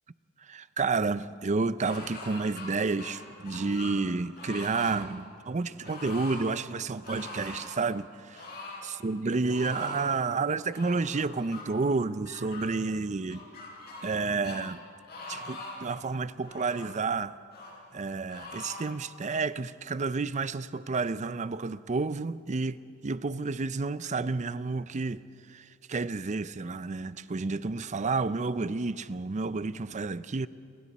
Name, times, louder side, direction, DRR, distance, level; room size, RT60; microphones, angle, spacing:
voice 1, 0.5-8.4 8.8-13.5 14.0-14.8 15.3-17.4 17.9-25.2 25.5-30.5, right 4 dB, 30° right, 0.5 m, -30 dB
sound 1, 1.8-2.7 3.0-4.0 4.3-5.0 5.8-6.4 7.0-7.7 8.3-8.8 9.4-10.1 10.7-11.6 12.2-12.7 13.3-14.2 14.4-14.6 15.1-15.9 16.4-16.9 17.5-17.7 18.3-18.9, left 2 dB, 45° left, 6.7 m, -42 dB
30.0 x 23.0 x 4.2 m
head